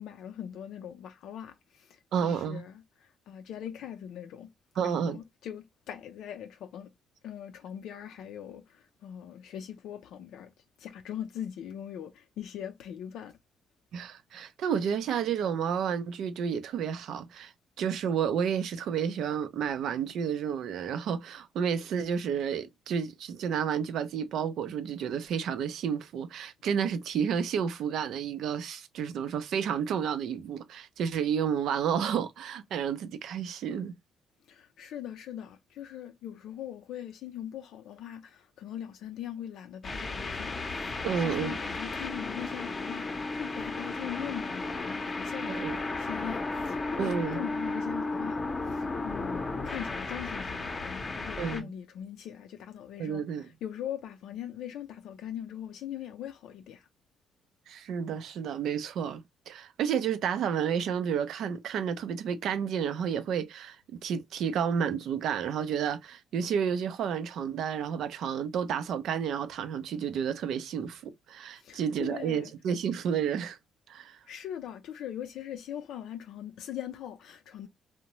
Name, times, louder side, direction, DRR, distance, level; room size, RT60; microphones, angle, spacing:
voice 1, 0.0-4.5 4.8-6.9 7.2-10.5 10.8-13.4 34.5-48.4 48.7-56.9 71.6-72.5 74.3-77.7, left 10 dB, 80° left, 0.3 m, -41 dB
voice 2, 2.1-2.7 4.8-5.2 13.9-17.5 17.8-33.9 41.0-41.6 45.5-45.8 47.0-47.4 51.4-51.7 53.0-53.5 57.7-73.6 73.9-74.2, right 7 dB, 75° right, 0.5 m, -31 dB
sound 1, 39.8-51.6, left 3 dB, 30° left, 0.6 m, -34 dB
2.6 x 2.0 x 2.9 m
cardioid pair, 90°, 0 cm